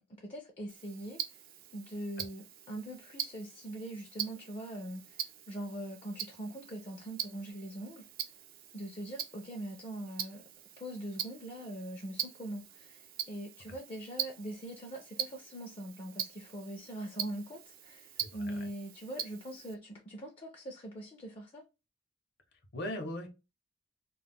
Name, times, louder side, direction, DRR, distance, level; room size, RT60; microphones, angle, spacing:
voice 1, 0.0-1.4 1.7-8.1 8.7-10.4 10.8-21.6, right 1 dB, 30° left, 0.4 m, -42 dB
Tick-tock, 0.7-19.7, right 10 dB, 50° right, 0.3 m, -43 dB
voice 2, 18.2-18.7 22.7-23.3, left 1 dB, 60° left, 0.8 m, -39 dB
2.3 x 2.0 x 3.4 m
head